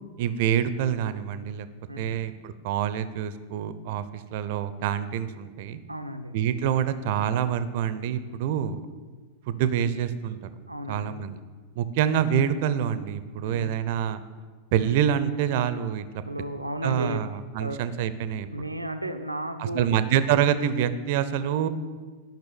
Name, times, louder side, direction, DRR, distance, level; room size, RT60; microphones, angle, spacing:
voice 1, 0.2-1.7 2.0-5.8 6.3-8.9 9.5-10.4 10.9-11.4 11.7-14.2 14.7-16.0 16.8-18.5 19.6-21.7, right 9 dB, 50° right, 13 dB, 0.7 m, -26 dB
voice 2, 1.9-2.2 5.9-6.3 10.7-11.2 13.4-13.7 16.3-17.2 17.6-17.8 18.5-19.9, right 1 dB, 85° right, 7 dB, 0.7 m, -33 dB
12.0 x 5.9 x 7.0 m, 1.4 s
figure-of-eight pair, 90°, 0 cm